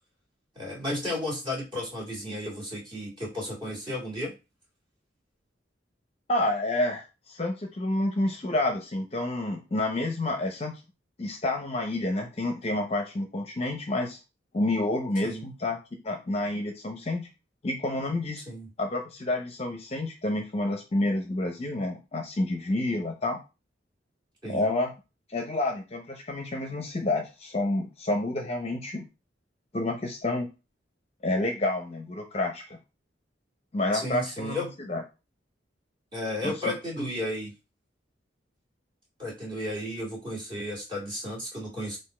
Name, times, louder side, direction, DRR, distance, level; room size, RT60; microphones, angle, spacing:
voice 1, 0.6-4.3 15.2-15.4 18.5-18.7 24.4-24.7 33.9-34.7 36.1-37.5 39.2-42.0, left 1 dB, 25° right, -5 dB, 2.2 m, -33 dB
voice 2, 6.3-10.8 11.2-14.2 14.5-15.8 16.0-17.3 17.6-18.4 18.8-23.4 24.5-24.9 25.3-29.1 29.7-30.5 31.2-32.8 33.7-35.0 36.4-37.1, left 2 dB, 35° left, 4 dB, 0.7 m, -29 dB
4.1 x 2.6 x 4.2 m, 0.28 s
head